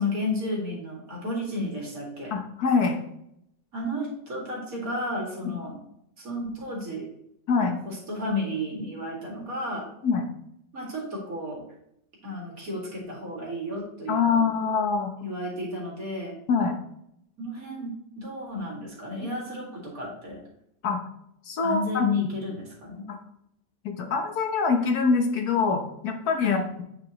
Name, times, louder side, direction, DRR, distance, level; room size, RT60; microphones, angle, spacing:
voice 1, 0.0-2.3 3.7-5.7 6.2-7.1 7.6-9.9 10.7-11.6 12.2-14.5 15.2-16.3 17.4-20.4 21.6-23.1 26.4-26.7, left 2 dB, 55° right, -3 dB, 2.6 m, -32 dB
voice 2, 2.3-3.0 5.4-5.5 7.5-7.7 10.0-10.2 14.1-15.1 16.5-16.7 20.8-21.0 21.5-22.1 23.8-26.8, left 5 dB, 65° left, 3 dB, 1.4 m, -24 dB
9.6 x 5.0 x 2.9 m, 0.74 s
omnidirectional pair, 1.8 m